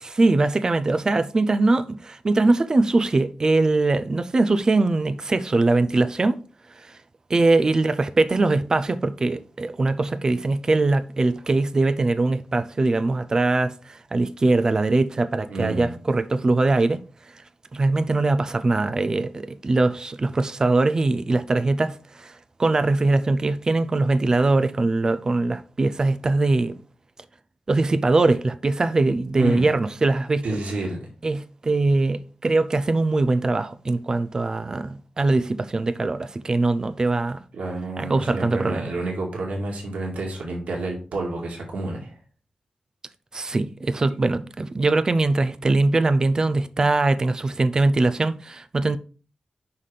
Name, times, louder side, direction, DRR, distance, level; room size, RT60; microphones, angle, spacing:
voice 1, 0.0-6.4 7.3-17.0 17.7-22.3 22.6-26.8 27.7-30.6 31.2-37.4 38.0-38.9 43.3-49.0, right 2 dB, 30° right, 0.4 m, -22 dB
voice 2, 15.5-15.9 29.4-29.7 30.4-31.0 37.5-42.2, right 2 dB, 85° right, 1.9 m, -29 dB
5.7 x 5.6 x 3.3 m
wide cardioid pair, 165°, 2 cm